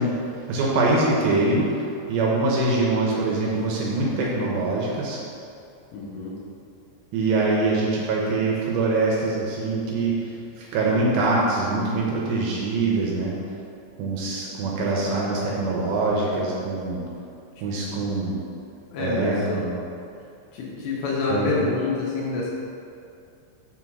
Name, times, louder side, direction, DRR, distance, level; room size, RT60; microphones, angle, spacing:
voice 1, 0.0-5.2 7.1-13.3 14.0-17.0 17.6-18.4 19.0-19.8 21.3-21.5, right 2 dB, 75° right, -3 dB, 2.9 m, -24 dB
voice 2, 5.9-6.3 18.9-19.7 20.5-22.5, left 3 dB, 75° left, -4 dB, 3.0 m, -27 dB
7.1 x 4.5 x 6.0 m, 2.5 s
omnidirectional pair, 5.6 m